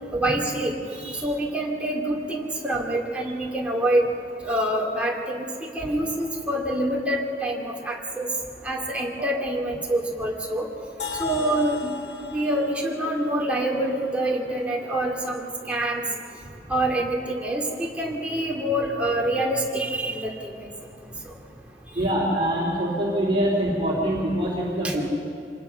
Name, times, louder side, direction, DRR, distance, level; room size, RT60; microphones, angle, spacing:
voice 1, 0.1-0.7 1.0-4.0 4.4-5.5 5.7-8.3 8.6-10.7 11.2-11.9 12.3-16.0 16.7-20.7 24.8-24.9, right 1 dB, 5° right, -2 dB, 2.5 m, -26 dB
sound 1, 11.0-14.9, left 5 dB, 80° left, 1.9 m, -38 dB
voice 2, 21.9-25.1, right 1 dB, 30° right, -5 dB, 3.3 m, -24 dB
26.0 x 20.0 x 5.8 m, 2.5 s
head